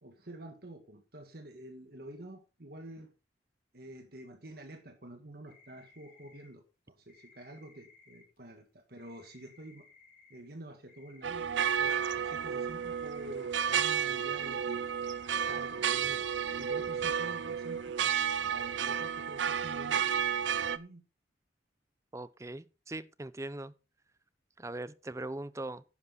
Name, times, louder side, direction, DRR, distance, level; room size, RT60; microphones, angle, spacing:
voice 1, 0.0-3.1 3.7-9.8 10.3-11.5 11.7-14.8 15.3-16.3 16.5-20.0 20.7-21.0, right 1 dB, 55° right, 1.7 m, -48 dB
sound 1, 5.5-6.5 7.1-8.4 9.0-10.4 10.9-12.2 12.8-14.2 14.7-15.9 16.5-17.9 18.5-19.7 20.3-20.7, left 4 dB, 50° left, 4.3 m, -60 dB
sound 2, 11.2-20.8, right 8 dB, 85° right, 0.6 m, -32 dB
voice 2, 22.1-23.7 24.6-25.8, right 2 dB, 15° right, 0.6 m, -40 dB
11.0 x 10.0 x 3.9 m
head